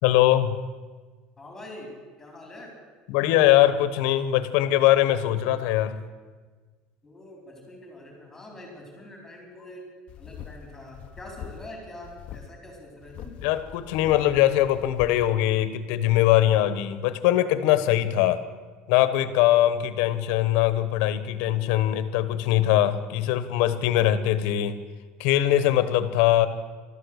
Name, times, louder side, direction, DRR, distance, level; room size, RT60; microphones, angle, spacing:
voice 1, 0.0-0.6 3.1-6.0 13.4-18.4 18.9-24.7 25.2-26.5, left 13 dB, 70° left, 12 dB, 1.1 m, -21 dB
voice 2, 1.4-1.9 2.2-2.7 7.0-9.8 10.2-13.4, left 1 dB, 10° left, 0 dB, 4.4 m, -44 dB
sound 1, 10.1-11.8 12.0-12.5 13.0-15.3, left 9 dB, 40° left, 0.8 m, -42 dB
13.5 x 13.0 x 8.1 m, 1.4 s
cardioid pair, 155°, 3 cm